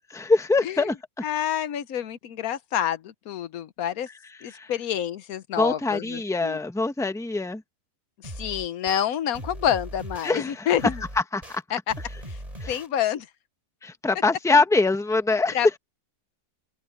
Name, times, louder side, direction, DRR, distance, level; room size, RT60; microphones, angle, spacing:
voice 1, 0.1-0.9 4.5-4.7 5.6-7.6 10.2-10.7 11.3-11.6 12.6-12.7 13.8-15.6, left 3 dB, ahead, 1.0 m, -23 dB
voice 2, 1.2-4.1 4.4-6.6 8.2-11.0 11.7-11.9 12.3-12.4 12.7-13.3 15.5-15.8, left 10 dB, 85° left, 1.3 m, -28 dB
sound 1, 8.2-9.0 9.3-10.3 10.8-11.6 11.9-12.9, right 1 dB, 25° right, 7.5 m, -38 dB
open air
omnidirectional pair, 1.5 m